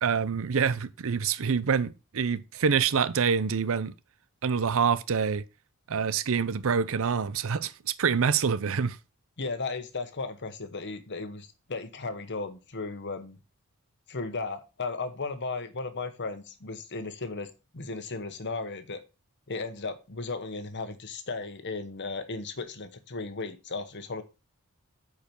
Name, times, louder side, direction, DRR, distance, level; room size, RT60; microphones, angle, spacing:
voice 1, 0.0-3.9 4.4-5.4 5.9-9.0, right 6 dB, 65° right, 0.6 m, -26 dB
voice 2, 9.4-13.4 14.1-19.0 19.5-24.2, left 3 dB, 55° left, 1.2 m, -35 dB
9.1 x 4.8 x 5.3 m
head